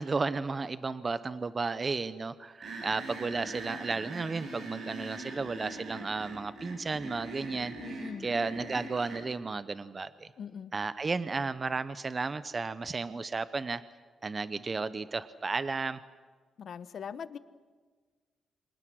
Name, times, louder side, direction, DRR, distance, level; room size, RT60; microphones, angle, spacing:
voice 1, 0.0-7.7 8.2-10.3 10.7-13.8 14.2-16.0, right 4 dB, 30° right, 14 dB, 0.8 m, -33 dB
sound 1, 2.6-9.2, right 2 dB, 60° right, 7.3 m, -42 dB
voice 2, 7.8-8.3 10.4-10.7 16.6-17.4, left 7 dB, 55° left, 13 dB, 1.1 m, -41 dB
29.0 x 26.0 x 6.3 m, 1.5 s
cardioid pair, 130°, 0 cm